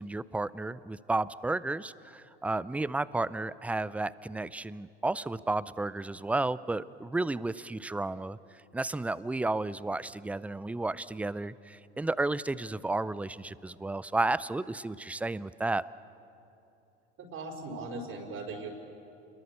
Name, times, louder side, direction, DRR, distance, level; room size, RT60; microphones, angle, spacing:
voice 1, 0.0-8.4 8.7-15.8, right 2 dB, 5° right, 18 dB, 0.5 m, -32 dB
voice 2, 17.2-18.7, right 3 dB, 45° right, 0 dB, 4.8 m, -39 dB
29.5 x 22.0 x 6.8 m, 2.8 s
hypercardioid pair, 80°, 33 cm